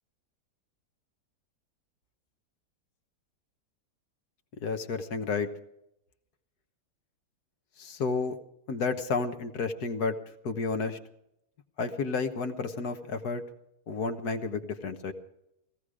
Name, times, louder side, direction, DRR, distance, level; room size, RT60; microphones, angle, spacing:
voice 1, 4.6-5.5 7.8-8.4 8.7-10.2 10.4-11.0 11.8-13.4 13.9-15.1, left 4 dB, 65° left, 7 dB, 1.8 m, -31 dB
17.5 x 16.0 x 4.9 m, 0.80 s
omnidirectional pair, 1.8 m